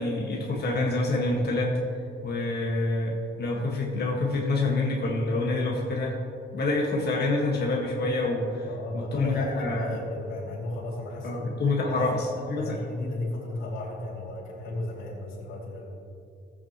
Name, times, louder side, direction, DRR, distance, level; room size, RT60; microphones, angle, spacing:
voice 1, 0.0-1.8 2.2-6.2 6.5-8.7 8.9-10.0 11.2-12.8, left 2 dB, 55° left, -2 dB, 1.7 m, -27 dB
voice 2, 8.7-11.5 11.9-12.3 12.6-15.9, left 2 dB, 85° left, -6 dB, 2.9 m, -35 dB
16.0 x 8.7 x 3.1 m, 2.5 s
cardioid pair, 90°, 20 cm